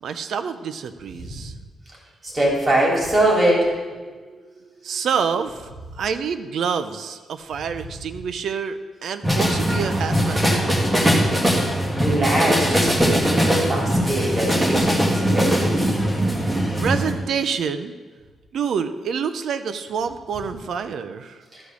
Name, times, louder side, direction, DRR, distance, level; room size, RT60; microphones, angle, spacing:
voice 1, 0.0-1.5 4.0-10.8 16.8-17.9 18.5-21.4, right 6 dB, 70° right, 11 dB, 0.6 m, -28 dB
voice 2, 2.2-3.7 12.0-15.9 21.5-21.6, right 1 dB, 30° right, -3 dB, 3.5 m, -22 dB
sound 1, 9.2-17.1, equal, 10° right, 1.8 m, -20 dB
13.5 x 5.0 x 6.9 m, 1.4 s
cardioid pair, 115°, 0 cm